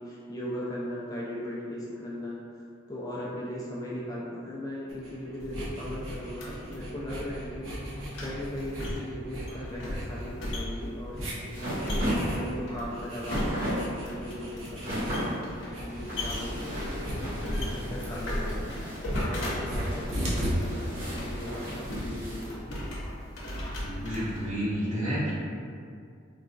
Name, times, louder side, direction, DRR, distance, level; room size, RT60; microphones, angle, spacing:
voice 1, 0.0-2.6 2.9-7.9 8.2-11.7 12.2-17.2 17.6-18.7 19.1-22.6, equal, 20° left, -7 dB, 0.4 m, -38 dB
sound 1, 4.9-20.5, equal, 90° right, 0.7 m, -39 dB
sound 2, 5.4-24.5, left 1 dB, 70° left, 0.7 m, -37 dB
sound 3, 10.8-22.5, equal, 55° right, 1.5 m, -36 dB
voice 2, 23.7-25.3, equal, 40° right, -10 dB, 1.0 m, -30 dB
3.9 x 2.3 x 2.4 m, 2.3 s
head